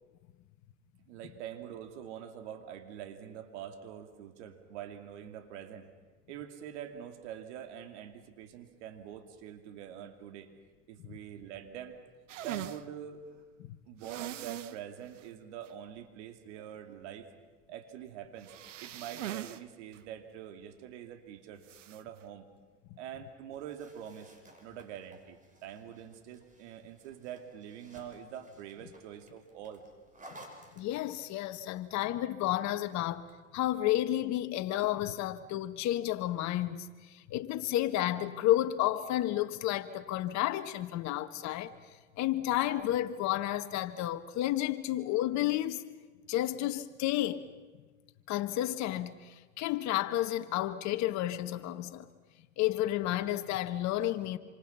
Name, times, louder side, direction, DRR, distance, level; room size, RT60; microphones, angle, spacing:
voice 1, 1.0-5.9 6.3-10.5 10.9-12.0 12.4-13.2 13.9-17.3 17.7-22.5 23.0-24.3 24.6-29.8 37.4-37.5 41.1-41.2, right 9 dB, 70° right, 2.8 m, -45 dB
sound 1, 12.3-12.8 14.0-14.8 15.2-15.3 15.7-15.8 18.4-19.6 19.9-20.0 21.6-22.0, right 12 dB, 85° right, 1.0 m, -40 dB
sound 2, 23.5-31.4 32.6-33.4, right 1 dB, 20° right, 5.3 m, -57 dB
voice 2, 30.8-33.2 33.5-41.7 42.2-45.8 46.3-47.4 48.3-52.1 52.6-54.4, left 14 dB, 50° left, 1.7 m, -31 dB
27.5 x 26.5 x 5.8 m
hypercardioid pair, 95°, 36 cm